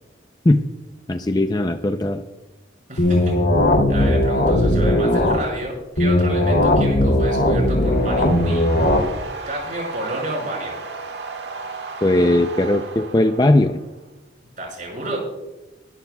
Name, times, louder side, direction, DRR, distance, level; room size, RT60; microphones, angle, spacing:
voice 1, 1.1-2.2 12.0-13.8, left 1 dB, 20° left, 7 dB, 0.5 m, -18 dB
voice 2, 2.9-3.4 3.9-8.7 9.5-10.8 14.6-15.2, right 1 dB, 45° right, -1 dB, 5.6 m, -30 dB
sound 1, 3.0-5.4 6.0-9.0, left 1 dB, 90° left, 2.7 m, -18 dB
sound 2, 6.9-13.9, right 4 dB, 70° right, 1.6 m, -35 dB
21.0 x 13.0 x 2.3 m, 1.0 s
head